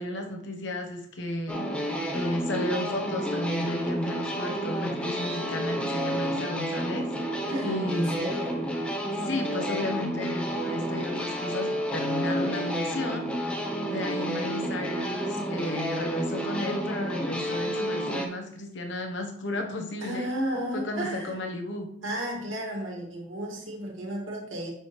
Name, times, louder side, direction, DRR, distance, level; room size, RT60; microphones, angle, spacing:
voice 1, 0.0-1.9 2.1-7.3 7.6-8.2 9.2-13.3 13.9-20.3 20.7-21.9, left 1 dB, 60° left, 3 dB, 1.1 m, -33 dB
sound 1, 1.5-18.3, equal, 5° left, 0.8 m, -30 dB
voice 2, 7.5-8.7 20.0-21.4 22.0-24.7, right 1 dB, 75° right, -1 dB, 2.3 m, -33 dB
8.0 x 6.2 x 3.2 m, 0.75 s
head